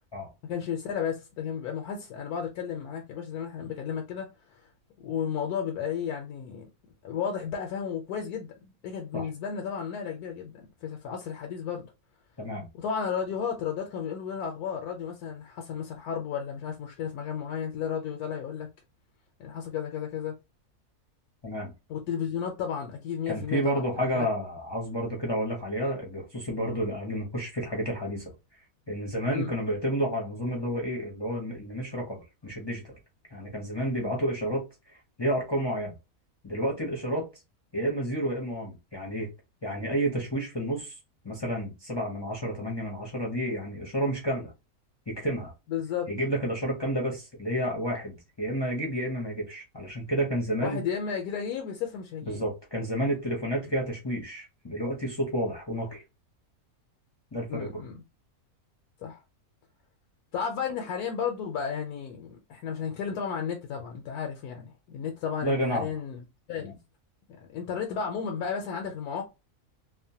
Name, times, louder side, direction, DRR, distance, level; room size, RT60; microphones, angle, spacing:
voice 1, 0.4-4.7 5.0-6.7 7.0-11.9 12.8-18.7 19.4-20.4 21.9-24.3 29.3-29.5 45.7-46.1 50.6-52.4 57.5-58.0 59.0-59.2 60.3-66.2 66.5-66.7 67.4-69.2, left 7 dB, 85° left, 1.1 m, -33 dB
voice 2, 23.3-28.3 28.9-33.0 33.3-35.9 36.4-37.3 37.7-39.3 39.6-41.0 41.2-44.5 45.1-45.5 46.1-50.8 52.2-56.0 57.3-57.8 65.4-65.9 66.6-66.8, equal, 35° left, 0.4 m, -30 dB
2.8 x 2.1 x 2.6 m
omnidirectional pair, 1.6 m